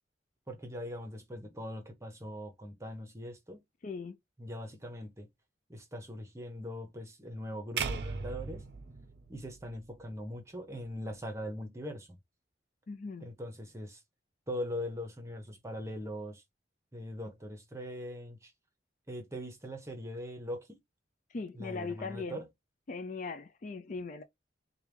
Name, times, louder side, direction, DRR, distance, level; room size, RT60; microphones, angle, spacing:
voice 1, 0.5-3.6 4.4-5.3 5.7-8.6 9.3-12.1 13.2-14.0 14.5-16.4 16.9-18.5 19.1-20.8 21.5-22.5, equal, 15° right, 0.9 m, -41 dB
voice 2, 3.8-4.2 12.9-13.3 21.3-22.4 22.9-24.2, left 4 dB, 40° left, 0.4 m, -39 dB
sound 1, 7.8-10.0, right 5 dB, 60° right, 0.5 m, -38 dB
4.6 x 2.3 x 3.3 m
head